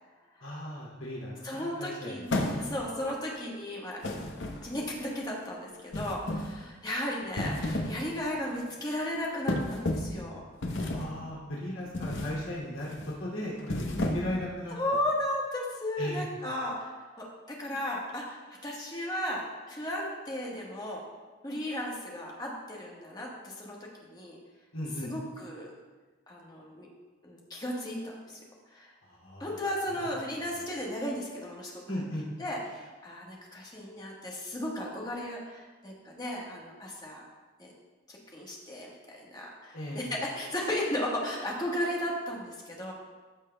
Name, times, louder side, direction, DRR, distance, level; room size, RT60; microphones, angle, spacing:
voice 1, 0.4-2.3 2.5-2.7 10.9-14.7 16.0-16.3 24.7-25.1 29.0-29.5 29.9-30.1 31.9-32.3 39.7-40.1, left 1 dB, 80° left, -5 dB, 2.5 m, -37 dB
voice 2, 1.4-4.2 4.6-10.4 14.7-21.0 21.4-24.4 25.0-25.7 26.3-26.9 27.2-28.4 28.7-28.9 29.4-32.0 32.4-37.2 37.6-37.7 38.1-42.9, left 1 dB, 20° left, -3 dB, 1.2 m, -35 dB
sound 1, 2.3-3.0 4.0-4.9 5.9-6.6 7.2-8.0 8.4-8.6 9.5-10.2 10.6-11.2 11.9-12.4 12.8-13.1 13.6-14.5, left 1 dB, 60° left, 0.8 m, -32 dB
13.5 x 6.3 x 2.2 m, 1.3 s
head